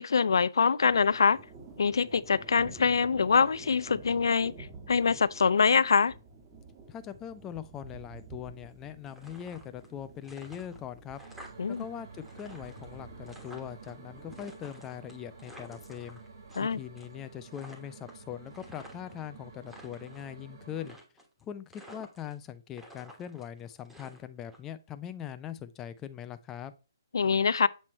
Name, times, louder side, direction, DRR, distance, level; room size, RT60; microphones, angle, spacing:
voice 1, 0.0-1.4 1.8-4.5 4.9-6.1 11.6-11.8 16.6-16.8 27.1-27.7, left 5 dB, 80° left, 0.3 m, -24 dB
sound 1, 0.8-16.9, right 3 dB, 20° right, 1.4 m, -51 dB
voice 2, 6.9-11.2 11.7-16.2 16.6-21.0 21.4-26.7, left 10 dB, 15° left, 0.4 m, -41 dB
sound 2, 9.0-9.9 10.2-11.8 12.1-13.9 14.3-16.7 17.0-17.3 17.5-19.2 19.6-20.3 20.8-21.4 21.7-22.5 22.7-24.6, equal, 5° right, 1.3 m, -52 dB
sound 3, 11.2-21.0, right 4 dB, 60° right, 2.0 m, -50 dB
7.6 x 3.1 x 4.1 m
hypercardioid pair, 155°, 2 cm